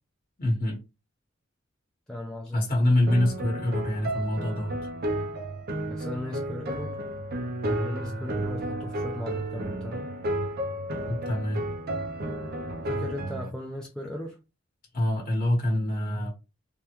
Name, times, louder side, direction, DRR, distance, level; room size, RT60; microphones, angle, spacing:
voice 1, 0.4-0.8 2.5-4.8 11.1-11.6 14.9-16.3, left 1 dB, 45° left, 1.1 m, -25 dB
voice 2, 2.1-2.6 5.9-7.0 7.8-10.1 12.8-14.4, left 1 dB, 5° left, 0.4 m, -37 dB
sound 1, 3.1-13.5, right 1 dB, 50° right, 0.5 m, -32 dB
3.5 x 2.2 x 2.9 m
head